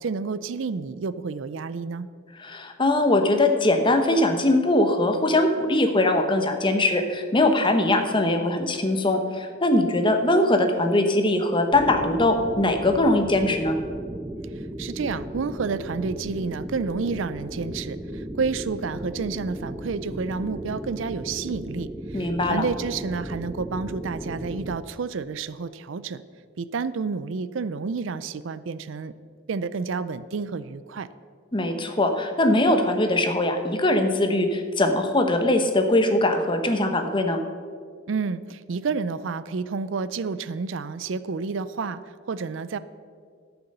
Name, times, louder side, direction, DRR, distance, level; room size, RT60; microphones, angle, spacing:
voice 1, 0.0-2.1 14.6-26.2 26.6-29.1 29.5-31.1 38.1-42.8, right 5 dB, 75° right, 15 dB, 0.5 m, -30 dB
voice 2, 2.4-13.8 22.1-22.6 31.5-37.4, left 1 dB, 25° left, 6 dB, 1.0 m, -21 dB
sound 1, 11.7-24.8, right 1 dB, 15° right, 0.4 m, -35 dB
13.0 x 7.0 x 6.7 m, 2.1 s
head